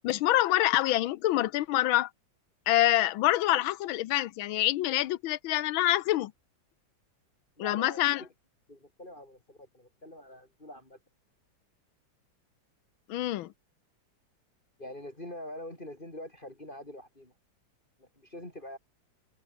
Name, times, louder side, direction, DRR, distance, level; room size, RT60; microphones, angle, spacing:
voice 1, 0.0-2.1 2.7-6.3 7.6-8.2 13.1-13.5, left 15 dB, 90° left, 1.5 m, -26 dB
voice 2, 7.6-8.3 8.7-11.0 14.8-17.3 18.0-18.8, left 1 dB, 25° left, 6.4 m, -44 dB
omnidirectional pair, 2.1 m